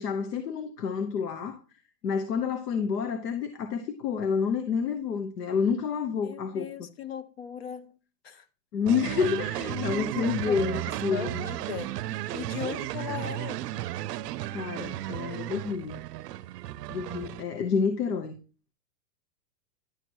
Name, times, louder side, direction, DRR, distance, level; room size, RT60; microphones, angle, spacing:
voice 1, 0.0-1.6 2.0-6.7 8.7-11.4 14.5-16.0 16.9-18.4, left 6 dB, 80° left, 1.1 m, -29 dB
voice 2, 6.2-8.0 8.2-8.4 9.6-10.6 11.1-12.0 12.3-13.6, left 8 dB, 40° left, 0.5 m, -38 dB
sound 1, 8.9-17.4, right 15 dB, 75° right, 0.6 m, -34 dB
11.0 x 6.2 x 2.9 m
supercardioid pair, 175°, 48 cm